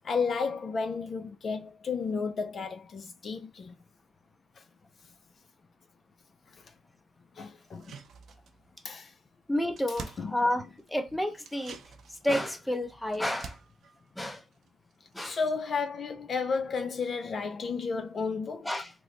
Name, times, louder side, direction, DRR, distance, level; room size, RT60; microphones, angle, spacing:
voice 1, 0.0-3.7 7.4-7.9 8.8-9.1 10.2-10.4 15.2-18.7, left 5 dB, 45° left, 0.4 m, -32 dB
sound 1, 7.6-8.8 9.1-9.2 9.4-11.0 11.4-15.1 15.4-15.5, right 6 dB, 65° right, 0.6 m, -48 dB
voice 2, 9.5-10.6 10.9-11.8 12.2-13.6 14.2-14.4 15.1-15.4 18.7-18.9, left 1 dB, 5° left, 0.7 m, -30 dB
3.0 x 2.1 x 3.8 m
cardioid pair, 90°, 0 cm